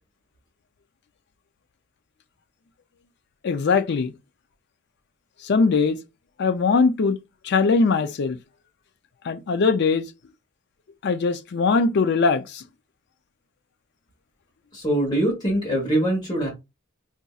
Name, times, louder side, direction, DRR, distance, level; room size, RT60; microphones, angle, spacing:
voice 1, 3.4-4.1 5.4-6.0 6.4-7.2 7.4-8.4 9.2-10.1 11.0-12.6, left 4 dB, 55° left, 0.4 m, -21 dB
voice 2, 14.7-16.5, right 1 dB, 20° left, 1.1 m, -23 dB
4.0 x 2.5 x 2.3 m
head